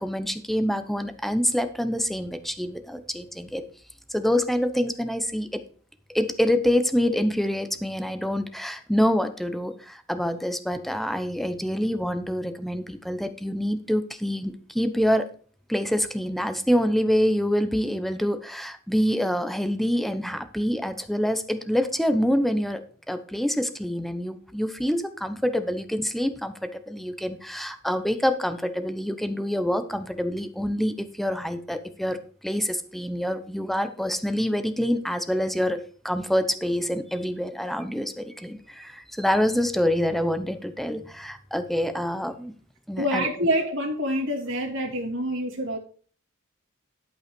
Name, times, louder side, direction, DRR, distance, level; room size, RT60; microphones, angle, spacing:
voice 1, 0.0-3.6 4.1-5.6 6.1-15.3 15.7-22.8 23.1-42.5 42.9-43.5, equal, ahead, 9 dB, 0.8 m, -26 dB
voice 2, 43.0-45.8, equal, 65° right, 0 dB, 2.8 m, -26 dB
11.5 x 5.6 x 5.3 m, 0.43 s
head